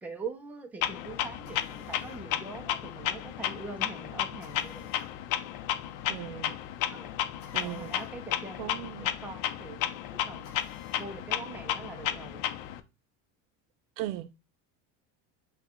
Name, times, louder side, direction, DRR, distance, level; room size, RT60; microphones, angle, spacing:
voice 1, 0.0-4.9 6.9-7.1 7.6-10.6 11.0-12.4, right 3 dB, 5° right, 0.5 m, -43 dB
Clock, 0.8-12.8, left 11 dB, 85° left, 0.7 m, -33 dB
Drill, 1.5-2.3 4.4-5.2 7.4-8.2 8.5-8.6 10.4-11.1, left 10 dB, 45° left, 0.9 m, -52 dB
voice 2, 6.1-6.6 7.5-7.9 8.6-9.1 14.0-14.3, right 13 dB, 85° right, 0.6 m, -37 dB
6.9 x 2.3 x 3.0 m
cardioid pair, 150°, 39 cm